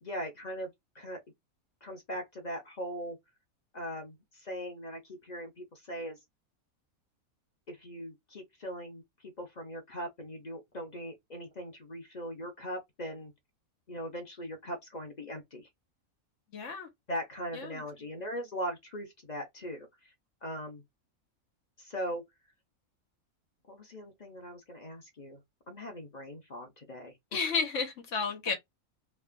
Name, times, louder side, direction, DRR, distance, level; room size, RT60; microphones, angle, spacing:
voice 1, 0.0-1.2 1.8-3.2 3.7-6.2 7.7-13.3 13.9-15.7 17.1-20.1 20.4-20.8 21.8-22.2 23.7-25.4 25.7-27.1, equal, 40° left, 0.7 m, -40 dB
voice 2, 16.5-16.9 17.5-17.8 27.3-28.5, left 5 dB, 60° left, 1.2 m, -32 dB
3.3 x 2.4 x 2.2 m
omnidirectional pair, 1.5 m